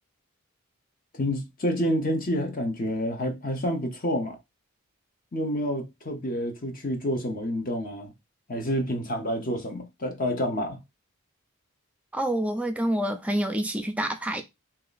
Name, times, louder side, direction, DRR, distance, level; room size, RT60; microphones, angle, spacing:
voice 1, 1.2-4.4 5.3-8.1 8.5-10.8, equal, 40° left, 0.8 m, -28 dB
voice 2, 12.1-14.4, right 1 dB, 5° right, 0.4 m, -27 dB
3.2 x 2.9 x 3.9 m
head